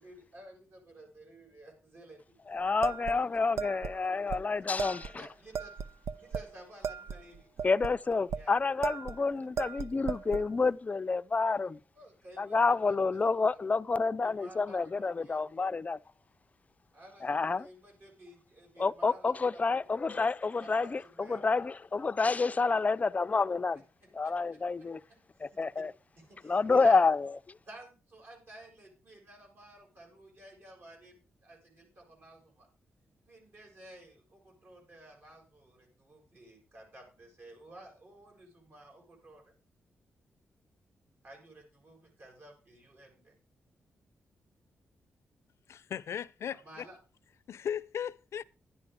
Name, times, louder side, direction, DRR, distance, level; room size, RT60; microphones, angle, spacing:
voice 1, 0.0-2.4 5.0-5.8 6.2-7.5 8.3-8.6 12.0-13.2 14.2-15.4 16.9-19.6 20.1-20.3 20.6-21.5 23.7-24.3 25.1-25.6 26.1-27.0 27.7-32.7 33.3-39.4 41.2-43.4 46.5-47.0, right 1 dB, 50° right, 6.9 m, -53 dB
voice 2, 2.5-5.2 7.6-11.8 12.4-16.0 17.2-17.7 18.8-23.8 24.1-25.0 25.4-25.9 26.4-27.3, left 4 dB, 30° left, 0.5 m, -29 dB
sound 1, 2.8-4.0 4.3-4.4 4.8-5.1 5.5-6.5 6.8-8.4 8.8-9.2 9.6-10.5, right 6 dB, 85° right, 0.6 m, -36 dB
voice 3, 45.7-46.9 47.5-48.4, left 9 dB, 75° left, 0.6 m, -37 dB
11.5 x 9.8 x 5.1 m
cardioid pair, 85°, 5 cm